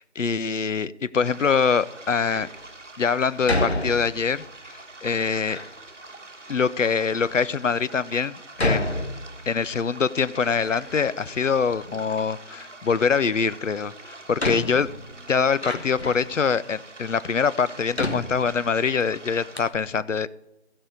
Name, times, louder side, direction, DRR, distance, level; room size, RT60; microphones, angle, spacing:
voice 1, 0.0-2.5 3.0-4.4 5.0-5.6 6.5-8.9 9.5-14.9 15.3-20.3, left 5 dB, 80° left, 17 dB, 0.7 m, -24 dB
sound 1, 1.2-19.7, right 2 dB, 75° right, 1.5 m, -45 dB
Door, 2.1-2.6 3.5-4.4 5.1-5.7 6.5-6.6 7.3-7.4 8.6-9.7 10.1-11.1 11.4-12.3 13.6-13.7 14.4-16.3 17.0-17.1 17.9-19.0 19.3-19.4 19.5-19.8, left 1 dB, 60° left, 1.4 m, -30 dB
15.5 x 5.6 x 6.7 m, 0.94 s
figure-of-eight pair, 180°, 37 cm